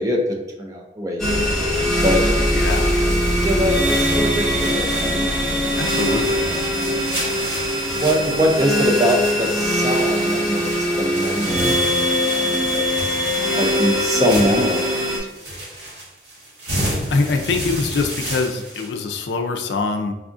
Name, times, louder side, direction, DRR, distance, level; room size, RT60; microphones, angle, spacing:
voice 1, 0.0-1.7 2.0-2.2 3.4-5.2 6.9-7.0 8.0-10.7 11.0-12.0 12.7-13.1 13.6-15.1 15.5-15.6, equal, 20° right, 1 dB, 0.4 m, -23 dB
sound 1, 1.2-15.2, equal, ahead, 0.9 m, -21 dB
sound 2, 1.6-18.9, right 1 dB, 80° right, 1.3 m, -32 dB
voice 2, 2.5-2.9 5.7-6.5 16.7-20.1, left 4 dB, 85° left, 5 dB, 0.4 m, -24 dB
4.7 x 2.4 x 2.5 m, 1.0 s
head